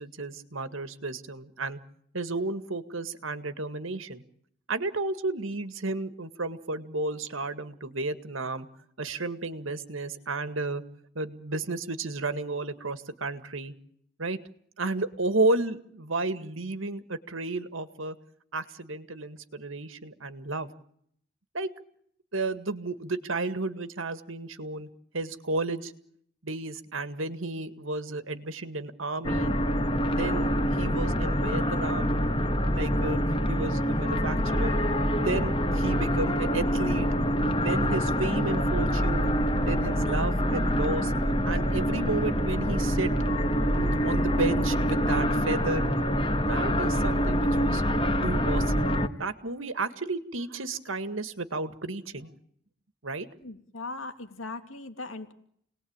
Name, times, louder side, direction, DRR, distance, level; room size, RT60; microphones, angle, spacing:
voice 1, 0.0-1.8 2.1-4.2 4.7-8.7 9.0-10.8 11.2-13.7 14.2-14.4 14.8-18.2 18.5-20.7 21.5-21.7 22.3-24.9 25.1-25.9 26.4-29.5 30.1-32.1 32.7-33.2 33.5-34.8 35.2-37.1 37.6-39.3 39.7-41.1 41.5-43.1 43.7-45.9 46.5-47.8 48.2-48.9 49.2-52.3 53.0-53.3, right 2 dB, 85° right, 11 dB, 1.9 m, -32 dB
sound 1, 29.2-49.1, equal, 25° left, 1.6 m, -26 dB
voice 2, 53.4-55.3, left 3 dB, 90° left, 8 dB, 2.6 m, -39 dB
29.0 x 19.5 x 8.9 m, 0.69 s
head